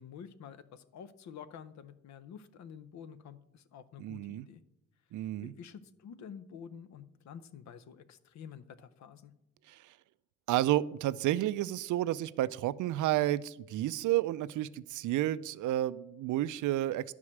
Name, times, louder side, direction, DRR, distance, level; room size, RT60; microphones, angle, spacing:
voice 1, 0.0-4.6 5.2-9.3, left 7 dB, 65° left, 14 dB, 0.7 m, -49 dB
voice 2, 4.0-4.5 5.1-5.5 9.7-9.9 10.5-17.1, right 14 dB, 90° right, 17 dB, 0.5 m, -31 dB
11.0 x 4.8 x 7.2 m, 0.86 s
cardioid pair, 165°, 30 cm